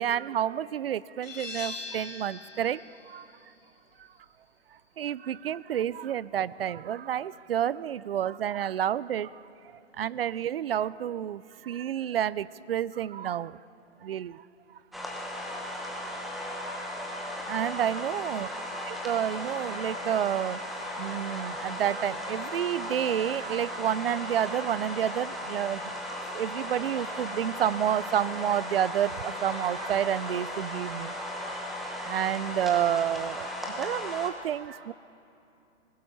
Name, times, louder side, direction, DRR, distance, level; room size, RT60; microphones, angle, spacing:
voice 1, 0.0-2.8 3.1-3.2 5.0-9.3 10.0-11.4 11.7-13.5 14.0-14.3 17.5-18.5 18.9-20.6 21.0-25.8 26.3-31.1 32.1-34.9, right 10 dB, 50° right, 20 dB, 0.5 m, -29 dB
sound 1, 1.2-6.6, left 4 dB, 90° left, 3.8 m, -44 dB
sound 2, 14.9-34.3, left 1 dB, ahead, 0.9 m, -36 dB
sound 3, 16.6-31.5, right 1 dB, 15° right, 6.8 m, -48 dB
26.5 x 20.0 x 5.5 m, 2.7 s
hypercardioid pair, 150°, 38 cm